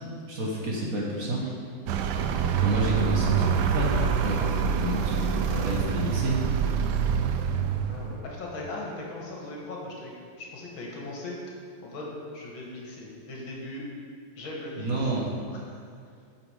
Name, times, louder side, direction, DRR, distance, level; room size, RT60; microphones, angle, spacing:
voice 1, 0.3-1.5 2.6-6.4 14.8-15.3, right 1 dB, 50° right, -3 dB, 1.4 m, -30 dB
Vehicle, 1.9-8.2, right 7 dB, 75° right, 1.0 m, -26 dB
voice 2, 7.9-11.4 11.8-13.8 14.4-15.1, left 2 dB, 75° left, -2 dB, 2.2 m, -38 dB
8.4 x 6.2 x 4.9 m, 2.3 s
omnidirectional pair, 2.2 m